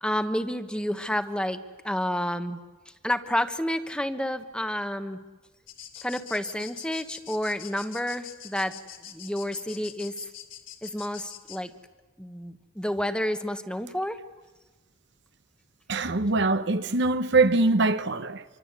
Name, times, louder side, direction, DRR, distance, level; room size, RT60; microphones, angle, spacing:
voice 1, 0.0-2.6 3.0-5.2 6.0-8.8 9.0-10.2 10.8-11.7 12.2-14.2, left 1 dB, 5° left, 1.2 m, -30 dB
sound 1, 5.7-11.6, left 11 dB, 75° left, 3.1 m, -44 dB
voice 2, 15.9-18.4, right 3 dB, 60° right, 1.1 m, -23 dB
26.0 x 24.5 x 8.2 m
head